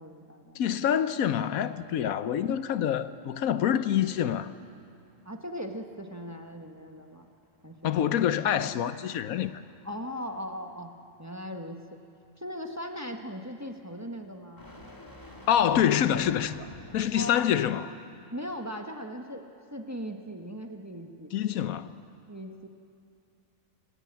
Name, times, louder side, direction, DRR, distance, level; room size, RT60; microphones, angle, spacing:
voice 1, 0.0-0.6 5.2-7.3 7.6-8.0 9.8-10.9 11.2-12.0 12.4-14.8 17.1-17.5 18.3-21.3 22.3-22.7, equal, 10° right, 1.2 m, -39 dB
voice 2, 0.5-4.5 7.8-9.6 15.5-16.7 16.9-17.9 21.3-22.0, left 9 dB, 85° left, 1.2 m, -26 dB
sound 1, 3.1-17.6, left 1 dB, 15° left, 1.8 m, -53 dB
26.0 x 17.5 x 8.9 m
omnidirectional pair, 1.4 m